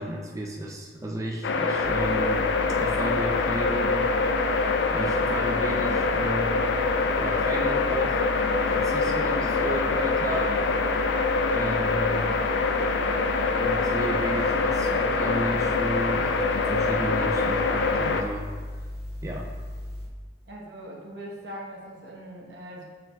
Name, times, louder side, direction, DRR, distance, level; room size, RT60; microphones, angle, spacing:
voice 1, 0.0-2.5 2.8-4.1 4.9-6.7 7.2-8.2 8.7-10.6 11.5-12.3 13.5-18.5 19.2-19.5, right 1 dB, 20° right, -1 dB, 0.5 m, -33 dB
sound 1, 1.4-18.2, left 3 dB, 75° left, 0.4 m, -25 dB
sound 2, 1.8-20.1, left 1 dB, 15° left, 0.8 m, -37 dB
voice 2, 20.4-22.9, right 1 dB, 75° right, -2 dB, 1.1 m, -41 dB
6.5 x 6.5 x 2.3 m, 1.5 s
head